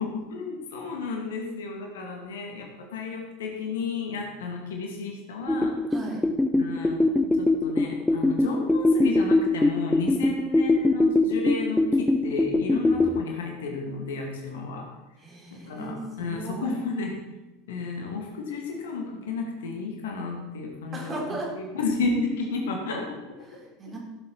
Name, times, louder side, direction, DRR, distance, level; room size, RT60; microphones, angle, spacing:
voice 1, 0.0-5.8 6.6-14.9 15.5-17.2 17.7-23.4, left 4 dB, 65° left, 2 dB, 2.2 m, -32 dB
sound 1, 5.5-13.2, left 2 dB, 5° left, 0.6 m, -23 dB
voice 2, 5.9-6.2 15.2-16.7 20.9-21.5 23.4-24.0, right 2 dB, 25° right, -2 dB, 4.2 m, -36 dB
16.0 x 8.0 x 4.6 m, 1.1 s
figure-of-eight pair, 80°, 0 cm